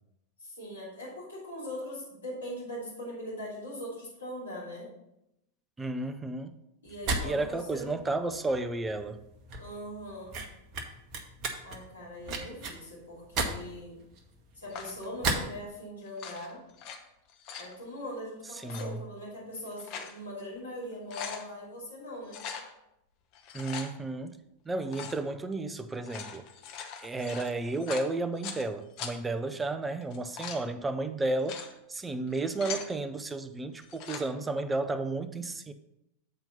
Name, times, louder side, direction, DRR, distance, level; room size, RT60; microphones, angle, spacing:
voice 1, 0.4-4.9 6.8-8.0 9.6-10.4 11.6-14.0 14.5-16.6 17.6-22.4 27.1-27.2, equal, 75° left, -7 dB, 3.3 m, -41 dB
voice 2, 5.8-6.5 7.2-9.2 18.5-19.0 23.5-24.4 24.7-26.4 27.0-31.6 31.9-35.7, right 2 dB, 10° right, 10 dB, 0.5 m, -32 dB
sound 1, 6.9-15.5, right 3 dB, 40° right, 0.9 m, -35 dB
sound 2, 14.7-15.1 16.1-17.0 17.3-17.7 18.6-18.9 19.5-20.2 20.6-20.7 20.9-21.4 22.3-22.7 23.3-23.9 24.9-25.2 25.9-28.6 29.0-29.1 30.0-30.6 31.2-31.7 32.3-32.9 33.8-34.2, left 6 dB, 40° left, 1.0 m, -41 dB
7.8 x 4.4 x 5.4 m, 0.85 s
figure-of-eight pair, 90°, 0 cm